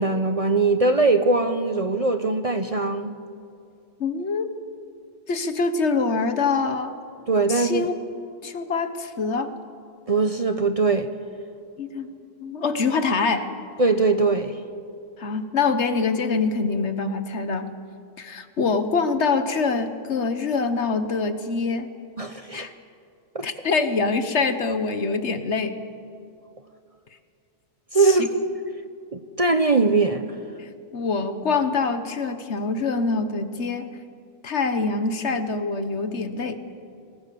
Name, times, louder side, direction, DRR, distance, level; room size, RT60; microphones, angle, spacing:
voice 1, 0.0-3.2 7.3-7.9 10.1-11.1 13.8-14.6 22.2-22.7 23.3-23.4 27.9-28.3 29.1-30.2, right 3 dB, 35° right, 8 dB, 0.8 m, -21 dB
voice 2, 4.0-4.5 5.3-6.9 7.5-8.0 8.4-9.5 11.8-12.1 12.4-13.5 15.2-17.7 18.2-21.9 22.5-22.7 23.4-25.8 28.0-28.3 30.6-33.9 34.4-36.6, left 4 dB, 65° left, 10 dB, 1.5 m, -25 dB
27.0 x 20.0 x 6.9 m, 2.4 s
omnidirectional pair, 1.3 m